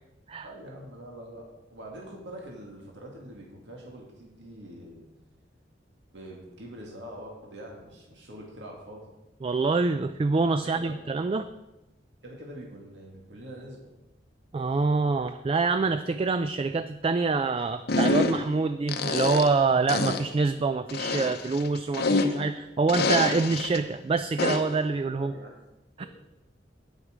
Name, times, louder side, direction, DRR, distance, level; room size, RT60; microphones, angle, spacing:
voice 1, 0.4-5.1 6.1-9.1 10.6-11.0 11.3-11.4 12.2-13.9 25.1-25.6 26.0-26.1, right 1 dB, 85° right, -1 dB, 2.1 m, -44 dB
voice 2, 9.4-11.4 14.5-25.3 26.0-26.1, right 4 dB, 30° right, 10 dB, 0.3 m, -26 dB
sound 1, 17.9-18.5 18.9-19.6 19.9-20.3 20.9-22.5 22.9-23.8 24.4-24.8, left 3 dB, 60° left, 0.7 m, -27 dB
9.6 x 8.2 x 4.9 m, 0.97 s
head